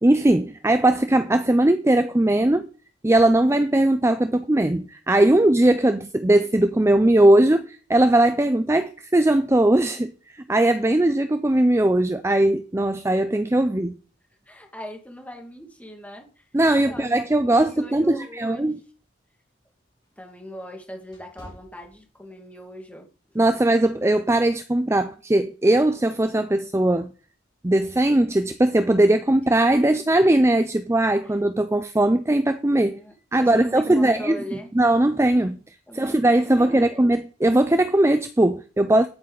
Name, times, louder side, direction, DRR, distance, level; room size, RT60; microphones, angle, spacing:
voice 1, 0.0-2.7 3.0-14.0 16.5-18.8 23.4-27.1 27.6-33.0 33.3-34.4 34.8-35.6 35.9-39.1, right 1 dB, 15° right, 0.4 m, -19 dB
voice 2, 14.5-16.5 16.7-18.8 20.2-23.1 29.9-30.0 31.2-31.4 32.8-33.1 33.4-34.7 35.9-37.1, equal, 5° left, 2.0 m, -40 dB
sound 1, 18.9-22.6 23.0-23.3 23.9-24.1, equal, 25° left, 3.6 m, -51 dB
10.5 x 8.7 x 3.9 m
head